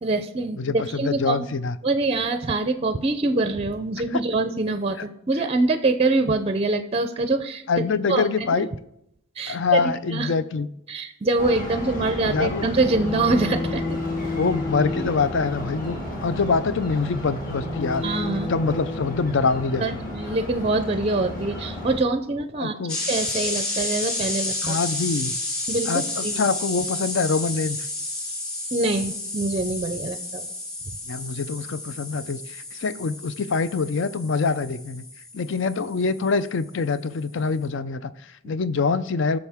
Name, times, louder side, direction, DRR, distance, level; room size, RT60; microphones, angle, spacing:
voice 1, 0.0-1.4 1.8-8.3 9.4-10.3 10.9-14.0 18.0-18.5 19.8-24.8 25.7-25.9 26.2-26.4 28.7-30.5, right 2 dB, 25° right, 9 dB, 0.5 m, -24 dB
voice 2, 0.6-1.8 4.1-4.2 5.0-5.1 7.7-8.7 9.5-10.7 12.2-12.7 14.3-16.0 16.2-18.1 18.5-20.0 22.6-23.0 24.6-25.3 25.9-27.8 31.1-35.0 35.3-39.4, left 4 dB, 55° left, 14 dB, 0.4 m, -25 dB
sound 1, 11.4-22.0, left 1 dB, 40° left, 2.0 m, -31 dB
sound 2, 22.9-36.5, left 2 dB, 20° left, 2.5 m, -31 dB
17.5 x 6.5 x 3.5 m, 0.82 s
head